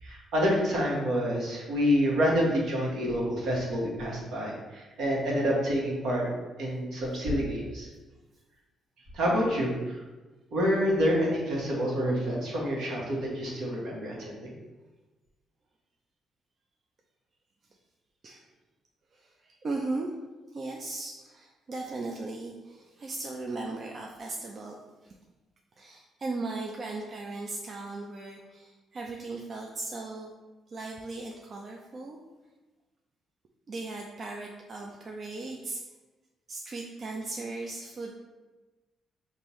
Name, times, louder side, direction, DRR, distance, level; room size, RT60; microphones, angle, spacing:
voice 1, 0.0-7.9 9.1-10.0 10.5-14.5, equal, 75° right, -3 dB, 1.4 m, -28 dB
voice 2, 19.1-20.1 20.5-25.2 25.8-30.3 30.7-32.2 33.7-35.8 36.5-38.1, right 3 dB, 45° right, 0 dB, 0.4 m, -37 dB
5.2 x 2.6 x 3.1 m, 1.2 s
cardioid pair, 90°, 0 cm